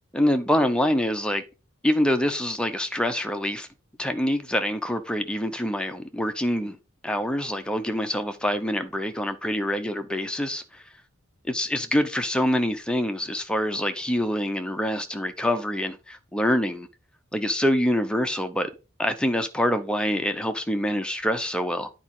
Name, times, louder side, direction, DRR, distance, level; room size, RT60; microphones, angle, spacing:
voice 1, 0.1-1.4 1.8-3.7 4.0-6.8 7.0-10.8 11.4-16.9 17.3-18.7 19.0-21.9, left 1 dB, 5° left, 0.7 m, -25 dB
9.5 x 4.8 x 3.8 m
head